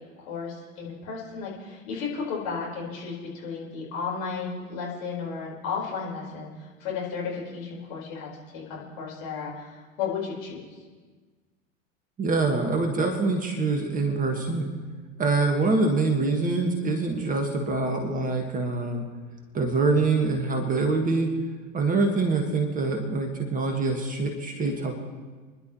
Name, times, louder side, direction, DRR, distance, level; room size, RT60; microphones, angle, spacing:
voice 1, 0.2-8.3 8.5-10.6, left 5 dB, 50° left, -3 dB, 4.9 m, -34 dB
voice 2, 12.2-14.7 15.2-19.1 19.5-21.3 21.7-25.0, right 3 dB, 20° right, 4 dB, 1.7 m, -25 dB
29.5 x 11.0 x 3.2 m, 1.4 s
figure-of-eight pair, 90°, 40 cm